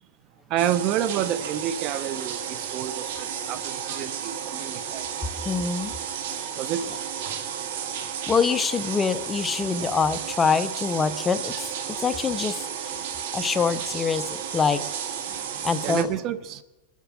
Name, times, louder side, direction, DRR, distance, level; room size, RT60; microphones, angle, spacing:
voice 1, 0.5-5.0 6.6-6.8 15.8-16.6, right 10 dB, 45° right, 17 dB, 0.6 m, -29 dB
sound 1, 0.6-16.0, right 8 dB, 70° right, 1.6 m, -33 dB
voice 2, 5.4-5.9 8.3-11.7 12.0-12.7 13.3-14.3 14.5-14.8 15.6-16.1, left 5 dB, 15° left, 12 dB, 0.6 m, -24 dB
22.5 x 8.2 x 6.2 m, 1.1 s
supercardioid pair, 135°, 0 cm